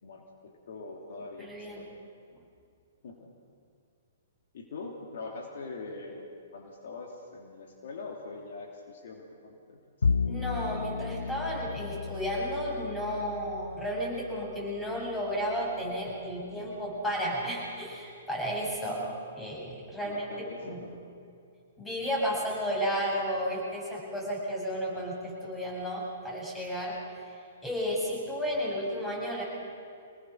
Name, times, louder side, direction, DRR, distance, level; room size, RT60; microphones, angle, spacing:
voice 1, 0.0-2.0 3.0-3.3 4.5-9.8 18.8-19.2 20.0-21.0 21.8-21.9, left 3 dB, 60° left, 1 dB, 2.9 m, -43 dB
voice 2, 1.4-1.8 10.3-19.0 19.4-20.3 20.6-20.8 21.8-27.0 27.3-29.4, equal, 10° left, -3 dB, 7.9 m, -33 dB
Bowed string instrument, 10.0-16.5, left 5 dB, 80° left, 0.5 m, -34 dB
26.0 x 19.5 x 6.4 m, 2.4 s
hypercardioid pair, 120°, 0 cm